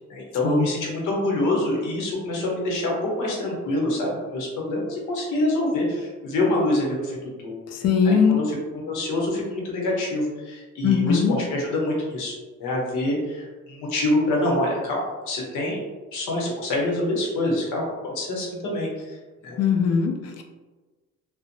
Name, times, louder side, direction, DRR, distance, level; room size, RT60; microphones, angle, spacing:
voice 1, 0.1-7.6 8.0-8.1 8.5-8.6 8.9-15.0 15.3-19.2 19.4-19.6, left 1 dB, 85° left, -2 dB, 0.8 m, -26 dB
voice 2, 7.7-8.4 10.8-11.4 19.6-20.4, left 6 dB, 55° left, 4 dB, 0.5 m, -20 dB
2.5 x 2.0 x 2.6 m, 1.3 s
cardioid pair, 90°, 30 cm